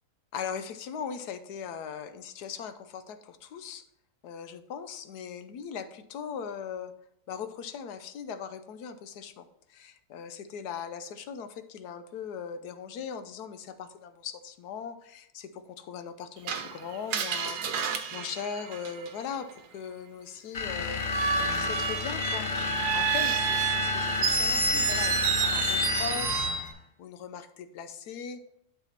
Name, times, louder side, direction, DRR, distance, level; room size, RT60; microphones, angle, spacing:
voice 1, 0.3-3.8 4.2-6.9 7.3-21.0 21.4-26.5 27.0-28.4, left 7 dB, 80° left, 10 dB, 1.3 m, -39 dB
Screech, 16.5-19.3 21.0-26.7, right 5 dB, 80° right, 1.3 m, -29 dB
sound 1, 20.5-26.7, left 4 dB, 45° left, 0.6 m, -31 dB
10.5 x 4.2 x 4.2 m, 0.76 s
omnidirectional pair, 1.7 m